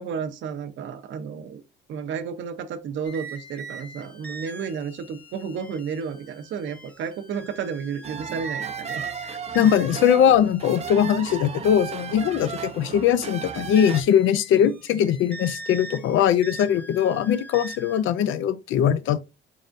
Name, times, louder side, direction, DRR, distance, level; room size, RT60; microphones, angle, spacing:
voice 1, 0.0-1.6 1.9-9.7 12.4-12.5 14.6-14.7, right 6 dB, 70° right, 0.7 m, -32 dB
sound 1, 3.0-18.0, right 3 dB, 5° left, 0.9 m, -41 dB
sound 2, 8.0-14.0, right 7 dB, 35° right, 0.4 m, -35 dB
voice 2, 9.5-19.2, left 9 dB, 80° left, 0.4 m, -21 dB
4.1 x 3.7 x 2.5 m
cardioid pair, 90°, 20 cm